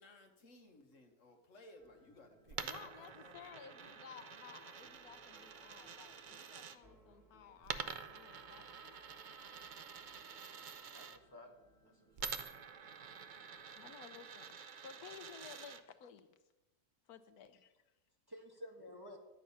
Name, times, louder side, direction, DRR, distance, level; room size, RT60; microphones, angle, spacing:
voice 1, 0.0-4.0, left 2 dB, 55° left, 4 dB, 1.6 m, -61 dB
sound 1, 1.8-14.0, right 2 dB, 15° left, 3.0 m, -68 dB
Coin (dropping), 2.5-6.8 7.6-11.2 12.2-15.8, right 6 dB, 65° right, 0.4 m, -48 dB
voice 2, 2.6-9.0 13.2-13.4 13.7-16.4 17.1-17.8, left 8 dB, 80° left, 11 dB, 1.2 m, -56 dB
voice 3, 10.9-11.5 11.8-12.4 18.3-19.2, left 1 dB, 15° right, 1 dB, 1.2 m, -53 dB
11.5 x 8.3 x 5.6 m, 1.0 s
omnidirectional pair, 1.6 m